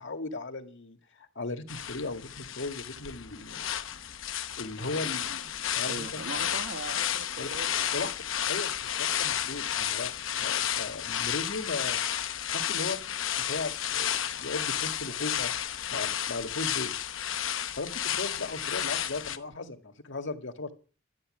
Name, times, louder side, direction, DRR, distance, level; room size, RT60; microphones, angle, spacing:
voice 1, 0.0-3.7 3.9-4.0 4.6-6.1 7.4-7.5 7.9-8.1 8.5-12.0 12.5-13.0 13.4-16.9 17.8-20.7, left 3 dB, 70° left, 6 dB, 1.9 m, -37 dB
sound 1, 1.7-19.4, left 10 dB, 90° left, 1.0 m, -32 dB
voice 2, 5.9-8.1, right 3 dB, 70° right, 6 dB, 1.6 m, -40 dB
13.0 x 9.5 x 7.7 m, 0.38 s
head